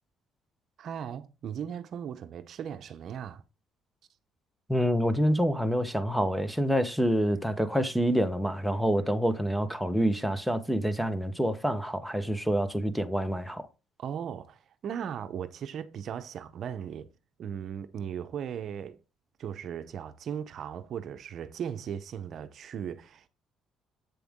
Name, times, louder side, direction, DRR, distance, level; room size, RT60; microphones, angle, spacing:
voice 1, 0.8-3.4 14.0-17.1 17.4-19.0 19.4-23.3, right 8 dB, 55° right, 0.8 m, -37 dB
voice 2, 4.7-13.7, equal, ahead, 1.1 m, -27 dB
8.5 x 6.8 x 3.7 m
cardioid pair, 100°, 0 cm